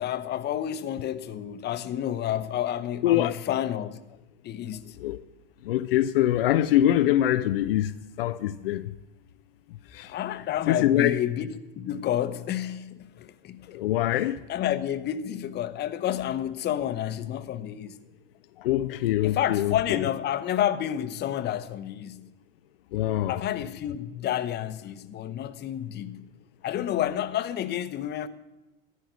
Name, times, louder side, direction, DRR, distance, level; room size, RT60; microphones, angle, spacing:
voice 1, 0.0-4.0 4.4-5.0 10.0-13.8 14.5-18.0 19.2-22.3 23.3-26.3 26.6-28.3, left 11 dB, 35° left, 0.9 m, -30 dB
voice 2, 3.0-3.3 5.0-5.2 5.6-8.9 9.9-10.1 10.7-11.2 13.7-14.4 18.6-20.0 22.9-23.4, left 12 dB, 75° left, 0.6 m, -24 dB
14.0 x 10.0 x 6.2 m
hypercardioid pair, 90°, 29 cm